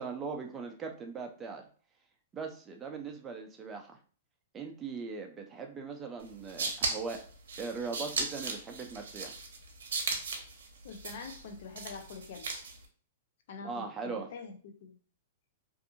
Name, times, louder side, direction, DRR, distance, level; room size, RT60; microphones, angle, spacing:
voice 1, 0.0-1.7 2.3-4.0 4.5-7.3 7.6-9.3 13.6-14.3, right 4 dB, 15° right, 0.5 m, -40 dB
sound 1, 6.2-12.8, right 4 dB, 80° right, 0.7 m, -37 dB
voice 2, 10.8-12.5 13.5-15.0, left 5 dB, 60° left, 0.5 m, -45 dB
2.6 x 2.6 x 2.5 m
hypercardioid pair, 145°, 0 cm